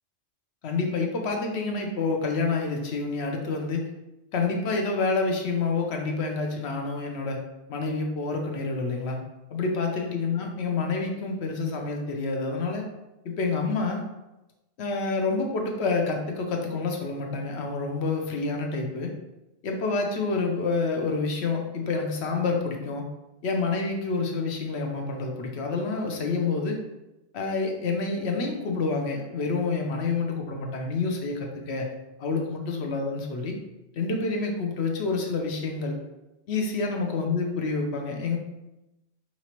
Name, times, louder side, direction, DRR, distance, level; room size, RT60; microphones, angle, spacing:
voice 1, 0.6-3.9 4.3-7.4 7.7-9.2 9.5-12.8 13.2-14.0 14.8-19.1 19.6-23.0 23.4-26.8 27.3-31.9 32.2-33.6 33.9-35.9 36.5-38.4, left 4 dB, 70° left, 2 dB, 0.9 m, -28 dB
5.1 x 3.0 x 2.9 m, 0.97 s
omnidirectional pair, 1.2 m